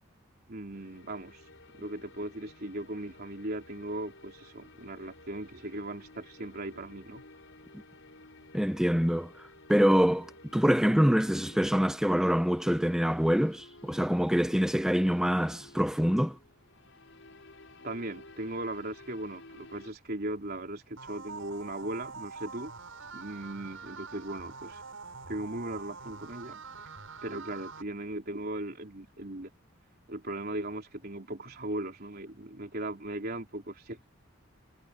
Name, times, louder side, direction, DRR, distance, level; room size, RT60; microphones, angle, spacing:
voice 1, 0.5-1.5 1.7-7.2 17.8-22.7 23.1-24.8 25.3-26.6 27.2-29.5 30.1-34.0, right 1 dB, 45° right, 3.7 m, -38 dB
sound 1, 0.7-19.9, left 2 dB, 65° left, 5.1 m, -54 dB
voice 2, 8.5-9.3 9.7-16.4, equal, 5° right, 0.6 m, -25 dB
sound 2, 21.0-27.8, right 4 dB, 75° right, 7.0 m, -45 dB
head